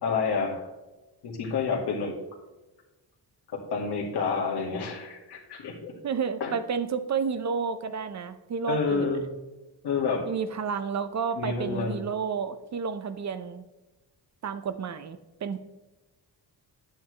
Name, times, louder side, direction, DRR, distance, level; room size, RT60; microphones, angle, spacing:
voice 1, 0.0-0.7 1.2-2.1 3.5-5.9 6.4-6.6 8.7-9.3 9.8-10.3 11.4-12.0, left 5 dB, 80° left, 0 dB, 2.1 m, -29 dB
voice 2, 6.0-9.1 10.3-13.6 14.4-15.6, right 6 dB, 45° right, 11 dB, 0.6 m, -31 dB
10.0 x 8.8 x 3.2 m, 1.1 s
wide cardioid pair, 140°, 40 cm